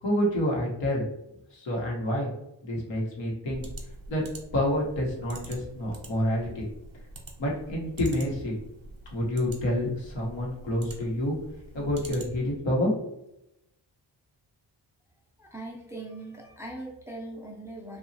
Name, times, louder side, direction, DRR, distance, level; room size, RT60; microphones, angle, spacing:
voice 1, 0.0-1.0 1.5-2.3 2.6-3.6 4.1-4.2 4.5-6.7 7.4-8.5 9.1-11.4 11.7-13.1, left 1 dB, 85° left, -3 dB, 1.0 m, -28 dB
sound 1, 3.5-12.6, right 2 dB, 50° right, 0.7 m, -45 dB
voice 2, 15.4-18.0, right 2 dB, 5° right, -1 dB, 0.4 m, -40 dB
2.9 x 2.3 x 2.6 m, 0.85 s
wide cardioid pair, 115°, 43 cm